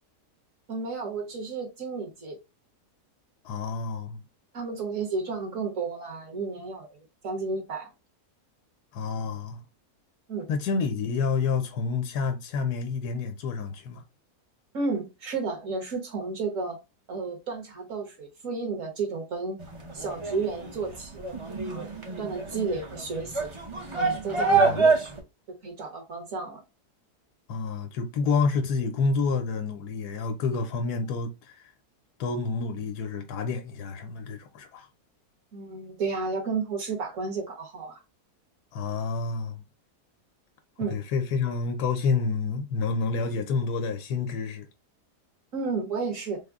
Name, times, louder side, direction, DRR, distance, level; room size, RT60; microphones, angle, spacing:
voice 1, 0.7-2.4 4.5-7.0 7.2-7.9 10.3-10.5 14.7-16.8 17.1-19.6 19.9-21.2 21.6-21.9 22.2-23.5 23.9-24.9 25.5-26.6 35.5-38.0 40.8-41.0 45.5-46.4, right 4 dB, 55° right, 1.4 m, -32 dB
voice 2, 3.4-4.2 8.9-9.6 10.5-14.0 24.5-24.9 27.5-31.6 32.2-34.9 38.7-39.6 40.9-44.7, left 4 dB, 80° left, 1.2 m, -29 dB
sound 1, 19.6-25.2, right 4 dB, 35° right, 0.5 m, -26 dB
3.6 x 2.1 x 3.4 m
omnidirectional pair, 1.7 m